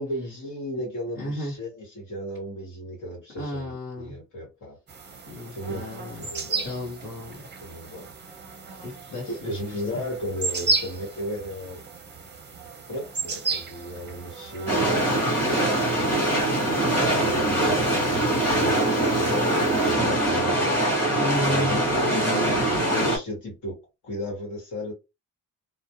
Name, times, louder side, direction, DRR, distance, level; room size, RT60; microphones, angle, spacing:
voice 1, 0.0-4.8 5.5-6.7 7.6-8.1 9.4-11.8 12.9-15.1 15.6-16.4 17.1-23.8 24.0-24.9, equal, 60° left, 1.3 m, -35 dB
voice 2, 1.1-1.5 3.3-4.2 5.2-6.3 6.6-7.4 8.8-10.0 21.1-21.8, left 1 dB, 35° left, 1.2 m, -33 dB
sound 1, 4.9-19.9, right 3 dB, 30° right, 0.6 m, -35 dB
sound 2, 14.7-23.2, right 1 dB, 5° left, 1.1 m, -23 dB
2.4 x 2.1 x 2.7 m
wide cardioid pair, 160°, 35 cm